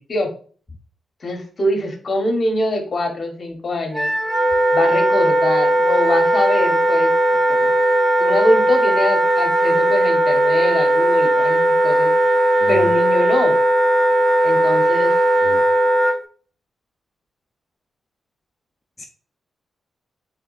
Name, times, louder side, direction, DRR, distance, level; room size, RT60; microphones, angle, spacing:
voice 1, 1.2-4.1 4.7-7.1 7.5-7.7 8.2-13.6 14.4-15.2, left 1 dB, 50° left, 3 dB, 1.0 m, -23 dB
Wind instrument woodwind instrument, 3.9-16.1, right 1 dB, 30° right, 0.7 m, -17 dB
voice 2, 12.6-12.9 15.4-15.6 19.0-19.1, left 2 dB, 25° left, 2 dB, 0.5 m, -31 dB
3.5 x 3.3 x 2.4 m, 0.43 s
cardioid pair, 75°, 0 cm